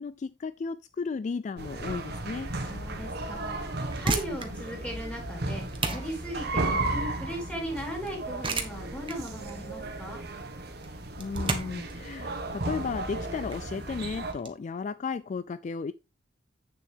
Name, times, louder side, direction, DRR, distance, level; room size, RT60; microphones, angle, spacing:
voice 1, 0.0-2.5 11.2-15.9, left 5 dB, 40° left, 0.3 m, -34 dB
sound 1, 1.6-14.3, right 2 dB, 65° right, 1.6 m, -35 dB
voice 2, 2.7-10.2, equal, 5° left, 4.0 m, -38 dB
sound 2, 3.9-14.5, right 3 dB, 30° right, 1.4 m, -36 dB
8.5 x 7.1 x 3.6 m
head